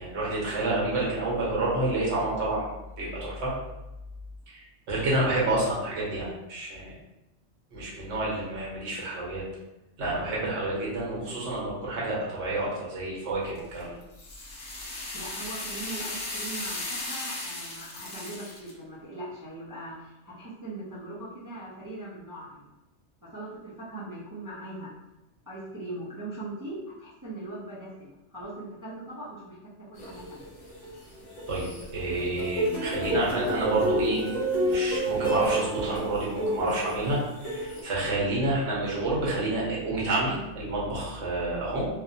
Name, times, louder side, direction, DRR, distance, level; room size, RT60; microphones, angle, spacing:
voice 1, 0.0-2.7 3.0-3.5 4.5-6.9 7.7-9.4 10.0-14.0 31.5-34.2 34.5-41.9, right 2 dB, 70° right, -5 dB, 1.1 m, -29 dB
sound 1, 13.6-18.7, left 2 dB, 70° left, 1.0 m, -36 dB
voice 2, 15.1-22.7 23.2-24.9 25.5-29.6 29.9-30.5, right 2 dB, 30° right, -10 dB, 0.4 m, -40 dB
sound 2, 30.0-31.8 32.2-37.8, right 1 dB, 45° left, 0.8 m, -29 dB
2.7 x 2.1 x 2.6 m, 0.96 s
omnidirectional pair, 1.2 m